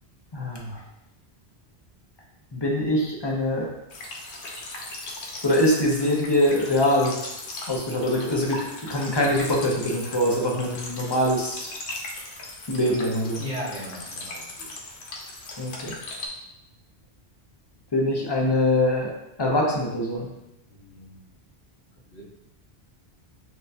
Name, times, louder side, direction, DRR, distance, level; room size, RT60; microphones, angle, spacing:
voice 1, 0.3-0.8 2.5-3.7 5.4-7.2 7.7-11.7 12.7-13.4 15.6-15.9 17.9-19.1 19.4-20.3, left 1 dB, 30° left, -2 dB, 0.6 m, -23 dB
sound 1, 3.9-16.3, left 2 dB, 85° left, 1.0 m, -38 dB
voice 2, 13.4-14.7 20.7-21.2 22.1-22.2, equal, 60° left, -10 dB, 1.3 m, -37 dB
5.8 x 2.3 x 2.7 m, 0.88 s
omnidirectional pair, 1.1 m